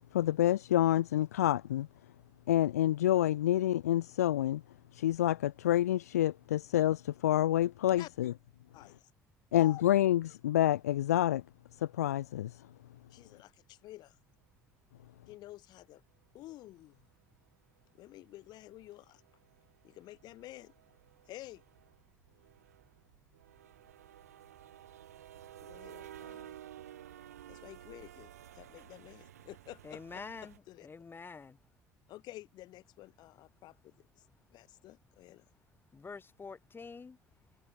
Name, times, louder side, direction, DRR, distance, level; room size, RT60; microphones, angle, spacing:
voice 1, 0.1-1.9 2.5-4.6 4.9-8.3 9.5-11.4 11.8-12.5, left 12 dB, 75° left, 0.5 m, -28 dB
voice 2, 8.7-9.1 9.5-9.8 13.1-14.2 15.3-16.0 16.3-17.1 17.9-19.2 19.8-20.7 21.3-21.6 25.6-26.6 27.5-30.9 32.1-34.1 34.5-35.4, left 16 dB, 55° left, 4.6 m, -50 dB
sound 1, 14.1-14.2 15.9-16.1 16.5-16.6 16.8-17.0 17.3-17.5 17.8-30.6, right 11 dB, 75° right, 3.5 m, -54 dB
voice 3, 29.8-30.5 30.8-31.6 35.9-37.2, left 4 dB, 25° left, 3.5 m, -46 dB
figure-of-eight pair, 55°, 8 cm